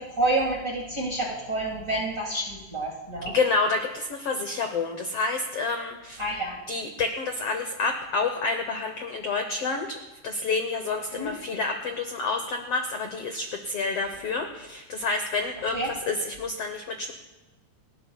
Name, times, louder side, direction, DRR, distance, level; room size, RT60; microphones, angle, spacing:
voice 1, 0.2-3.3 6.2-6.6 11.2-11.3 15.7-15.9, right 2 dB, 30° right, -2 dB, 1.7 m, -28 dB
voice 2, 3.3-6.2 6.7-17.1, left 3 dB, 70° left, 5 dB, 1.5 m, -29 dB
29.0 x 12.0 x 2.3 m, 1.1 s
omnidirectional pair, 3.8 m